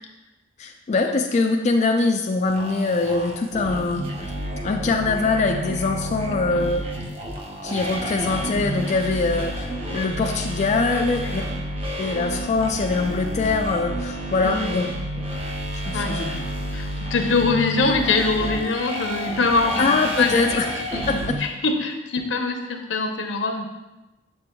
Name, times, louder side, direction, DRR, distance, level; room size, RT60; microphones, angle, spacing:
voice 1, 0.6-4.3 4.6-6.8 7.6-11.4 12.0-14.9 15.9-16.4 19.8-20.7 21.1-21.2, left 3 dB, 40° left, 2 dB, 0.3 m, -23 dB
sound 1, 2.5-21.4, equal, 30° right, 0.8 m, -30 dB
voice 2, 10.9-11.3 14.4-14.7 15.9-16.2 16.7-23.7, left 3 dB, 80° left, 3 dB, 0.7 m, -24 dB
6.7 x 6.7 x 2.2 m, 1.0 s
head